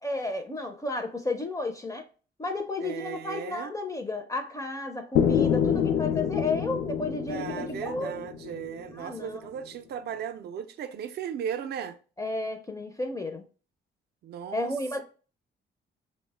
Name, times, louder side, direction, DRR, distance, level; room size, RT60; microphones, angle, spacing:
voice 1, 0.0-2.1 2.4-8.1 8.9-9.4 12.2-13.4 14.5-15.0, left 2 dB, 15° left, 0.4 m, -32 dB
voice 2, 2.8-3.7 7.3-12.0 14.2-14.7, right 8 dB, 55° right, 0.4 m, -36 dB
sound 1, 5.2-9.0, left 8 dB, 80° left, 0.4 m, -27 dB
3.0 x 2.1 x 3.2 m
cardioid pair, 90°, 20 cm